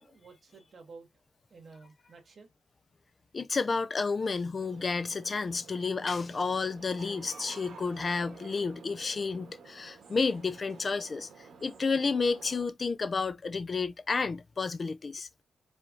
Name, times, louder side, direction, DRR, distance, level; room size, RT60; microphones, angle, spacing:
voice 1, 0.0-1.1 1.5-2.5, right 4 dB, 45° right, 2.3 m, -52 dB
voice 2, 3.3-11.3 11.6-15.3, left 4 dB, 35° left, 0.5 m, -31 dB
sound 1, 4.5-12.7, right 5 dB, 80° right, 1.7 m, -51 dB
5.0 x 3.6 x 2.6 m
wide cardioid pair, 130°, 0 cm